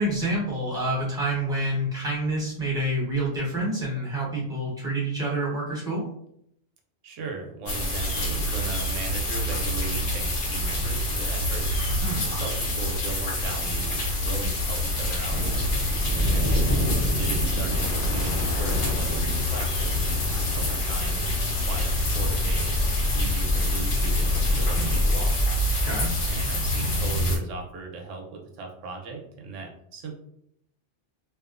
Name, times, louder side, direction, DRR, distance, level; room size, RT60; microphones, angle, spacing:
voice 1, 0.0-6.0 12.0-12.2 25.8-26.1, right 1 dB, 5° right, -7 dB, 1.1 m, -27 dB
voice 2, 7.0-11.7 12.2-15.4 16.3-20.1 20.4-22.8 23.1-25.3 26.2-30.1, right 4 dB, 85° right, 1 dB, 1.0 m, -38 dB
sound 1, 7.7-27.4, left 1 dB, 85° left, 1.1 m, -26 dB
sound 2, 15.3-25.0, left 1 dB, 35° right, 0.9 m, -30 dB
sound 3, 17.7-23.8, left 2 dB, 55° left, 0.7 m, -41 dB
2.7 x 2.3 x 2.4 m, 0.72 s
omnidirectional pair, 1.2 m